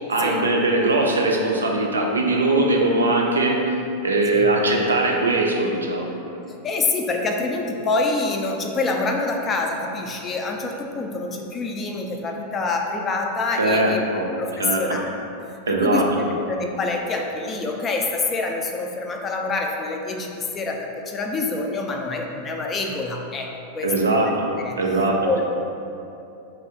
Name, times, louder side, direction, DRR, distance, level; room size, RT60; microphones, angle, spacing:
voice 1, 0.1-3.8 4.0-6.4 13.6-14.3 14.6-14.8 15.7-16.3 23.8-24.3 24.8-25.3, right 2 dB, 75° right, 0 dB, 0.4 m, -21 dB
voice 2, 6.6-14.0 14.4-15.1 15.7-16.1 16.5-24.2 24.6-24.8 25.2-25.5, left 3 dB, 25° left, 2 dB, 0.3 m, -26 dB
3.3 x 2.4 x 3.6 m, 2.7 s
figure-of-eight pair, 90°, 0 cm